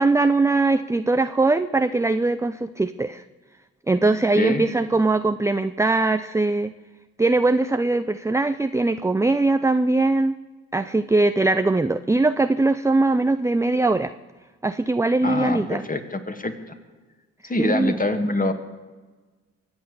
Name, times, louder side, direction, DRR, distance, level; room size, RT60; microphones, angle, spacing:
voice 1, 0.0-3.2 3.9-6.7 7.2-10.3 10.7-14.1 14.6-15.9 17.6-18.0, right 2 dB, 10° right, 10 dB, 0.6 m, -21 dB
voice 2, 4.1-4.7 15.2-16.5 17.4-18.5, left 2 dB, 20° left, 7 dB, 2.3 m, -25 dB
24.0 x 8.0 x 6.9 m, 1.3 s
hypercardioid pair, 45°, 37 cm